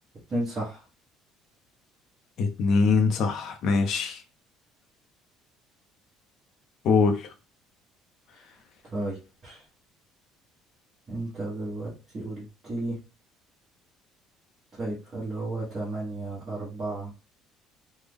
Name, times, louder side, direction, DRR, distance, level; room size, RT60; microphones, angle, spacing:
voice 1, 0.3-0.8 8.9-9.2 9.4-9.6 11.1-13.0 14.8-17.1, right 2 dB, 25° right, 1.1 m, -33 dB
voice 2, 2.4-4.2 6.8-7.2, left 4 dB, 45° left, 0.5 m, -22 dB
3.3 x 2.0 x 3.4 m
cardioid pair, 175°, 0 cm